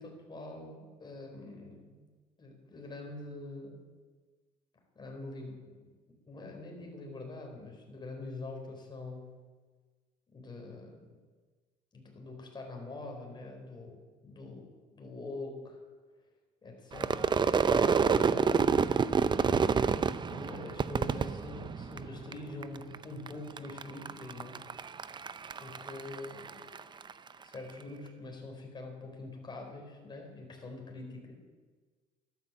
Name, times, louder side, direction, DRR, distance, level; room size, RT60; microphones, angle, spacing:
voice 1, 0.0-2.0 2.4-3.8 4.9-5.9 6.3-9.3 10.3-11.1 11.9-15.8 16.6-18.7 20.0-24.6 25.6-26.6 27.4-31.4, left 2 dB, 25° left, 1 dB, 4.3 m, -44 dB
Crowd / Fireworks, 16.9-22.3 22.6-23.3 23.6-27.1, right 5 dB, 25° right, 0.5 m, -28 dB
12.5 x 12.0 x 7.4 m, 1.4 s
cardioid pair, 110°, 17 cm